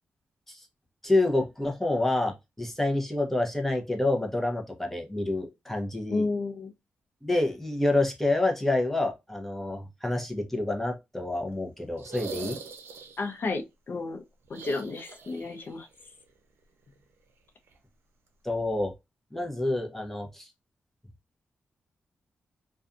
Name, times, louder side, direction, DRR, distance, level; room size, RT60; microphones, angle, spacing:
voice 1, 1.0-6.2 7.2-12.6 18.4-18.9 19.3-20.5, left 2 dB, 5° left, 0.8 m, -28 dB
voice 2, 6.1-6.7 13.2-14.2 14.5-15.9, left 3 dB, 55° left, 0.6 m, -31 dB
sound 1, 12.0-13.4 14.5-15.7 15.9-16.0 17.7-17.8, right 5 dB, 80° right, 0.5 m, -41 dB
2.5 x 2.3 x 2.4 m
cardioid pair, 70°, 4 cm